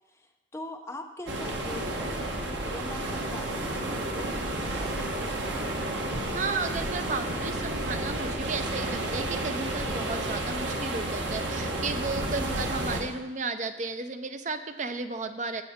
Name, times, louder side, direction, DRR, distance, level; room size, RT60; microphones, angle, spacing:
voice 1, 0.1-4.9 5.2-5.5, left 1 dB, 15° left, 3 dB, 0.7 m, -43 dB
sound 1, 1.3-13.0, right 1 dB, 75° right, 1.3 m, -31 dB
voice 2, 6.3-15.6, right 3 dB, 40° right, 9 dB, 0.5 m, -33 dB
16.0 x 5.8 x 3.6 m, 1.1 s
head